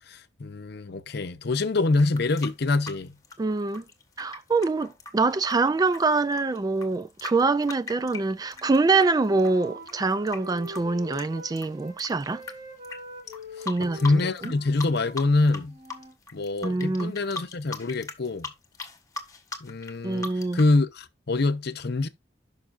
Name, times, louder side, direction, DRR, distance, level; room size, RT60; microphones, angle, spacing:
voice 1, 0.1-3.1 13.6-15.7 16.3-18.5 19.6-22.1, left 3 dB, 65° left, 0.7 m, -25 dB
sound 1, 1.9-9.1 9.4-12.5 12.8-13.0 13.3-14.5 14.8-15.6 15.9-20.7, left 3 dB, 20° left, 1.4 m, -39 dB
voice 2, 3.4-3.8 4.2-12.4 13.7-14.5 16.6-17.1 20.0-20.6, right 3 dB, 20° right, 0.3 m, -25 dB
Wind instrument woodwind instrument, 8.6-12.0 12.3-16.2, left 1 dB, 35° right, 3.8 m, -44 dB
12.0 x 5.5 x 2.5 m
head